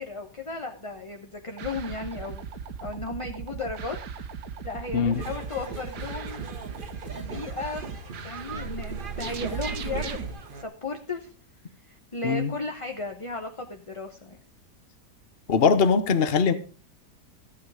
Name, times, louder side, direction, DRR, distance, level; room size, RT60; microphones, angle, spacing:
voice 1, 0.0-2.5 2.8-4.0 4.6-6.5 7.1-8.0 8.2-10.3 10.6-11.3 11.9-14.4, left 3 dB, 25° left, 4 dB, 0.9 m, -35 dB
sound 1, 1.6-10.3, right 6 dB, 75° right, 1.6 m, -37 dB
sound 2, 5.1-10.6, right 4 dB, 35° right, 1.2 m, -39 dB
voice 2, 15.5-16.5, left 5 dB, 40° left, 10 dB, 1.2 m, -21 dB
14.5 x 9.3 x 5.0 m, 0.36 s
omnidirectional pair, 1.8 m